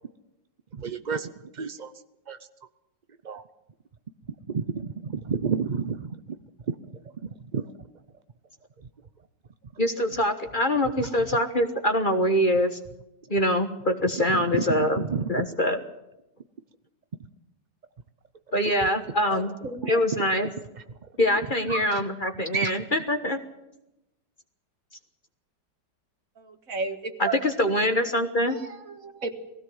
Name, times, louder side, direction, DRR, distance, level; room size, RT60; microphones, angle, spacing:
voice 1, 0.7-1.9 2.3-2.4 3.2-3.4 4.5-6.4 6.7-6.8 7.5-7.7 11.0-11.1 14.5-15.5 19.8-19.9, right 6 dB, 70° right, 11 dB, 0.4 m, -30 dB
voice 2, 9.8-12.8 13.3-15.0 15.3-15.8 18.5-19.5 19.9-20.5 21.2-23.4 27.2-28.6, left 1 dB, 30° left, 7 dB, 1.3 m, -24 dB
voice 3, 19.3-20.1 21.7-22.0 22.5-22.7 26.4-27.4 28.5-29.3, right 4 dB, 50° right, 7 dB, 2.0 m, -33 dB
20.0 x 16.5 x 7.9 m, 0.91 s
omnidirectional pair, 1.9 m